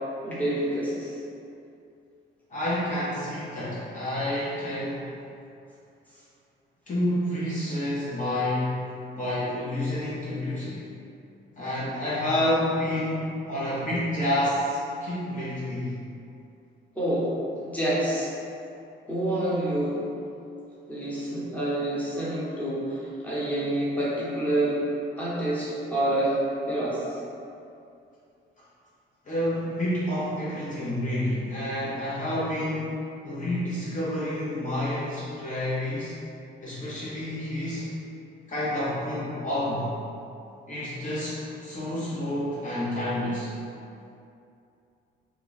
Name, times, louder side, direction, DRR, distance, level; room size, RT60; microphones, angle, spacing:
voice 1, 0.2-1.1 16.9-17.3 17.6-18.3 19.1-20.1 20.9-24.8 25.2-26.4 26.7-27.2, right 1 dB, 5° left, -9 dB, 1.1 m, -27 dB
voice 2, 2.5-5.1 6.9-8.8 9.2-10.8 11.6-16.0 29.3-36.2 36.6-37.9 38.5-39.9 40.7-43.5, left 1 dB, 40° left, -9 dB, 0.8 m, -29 dB
2.9 x 2.3 x 3.9 m, 2.6 s
cardioid pair, 90°, 20 cm